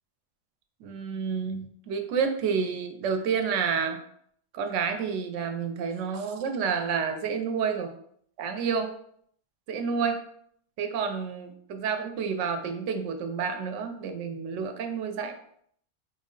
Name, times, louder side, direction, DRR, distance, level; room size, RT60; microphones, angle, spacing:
voice 1, 0.8-4.0 4.5-7.9 8.4-8.9 9.7-10.2 10.8-15.3, right 6 dB, 85° right, 6 dB, 0.9 m, -29 dB
4.5 x 2.1 x 3.7 m, 0.66 s
omnidirectional pair, 1.2 m